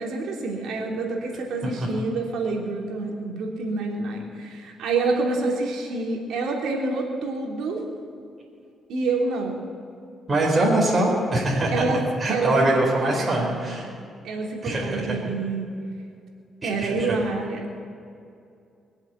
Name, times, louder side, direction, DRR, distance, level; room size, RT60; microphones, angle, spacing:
voice 1, 0.0-7.8 8.9-9.6 11.7-12.0 12.3-12.7 13.1-13.9 14.2-15.7 16.6-17.8, right 3 dB, 75° right, 0 dB, 3.3 m, -27 dB
voice 2, 10.3-11.8 12.2-13.8 14.6-15.2 16.6-17.2, right 1 dB, 30° right, -3 dB, 4.5 m, -23 dB
22.0 x 8.0 x 8.3 m, 2.4 s
cardioid pair, 90°, 0 cm